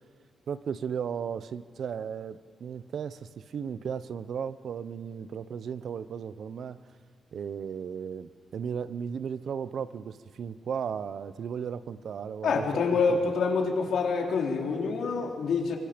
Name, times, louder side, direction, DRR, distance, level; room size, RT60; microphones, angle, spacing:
voice 1, 0.5-6.8 7.3-12.7 13.1-13.2, right 7 dB, 55° right, 14 dB, 0.7 m, -35 dB
voice 2, 12.4-15.8, left 4 dB, 75° left, 1 dB, 3.3 m, -26 dB
26.0 x 24.5 x 5.2 m, 2.2 s
wide cardioid pair, 170°, 0 cm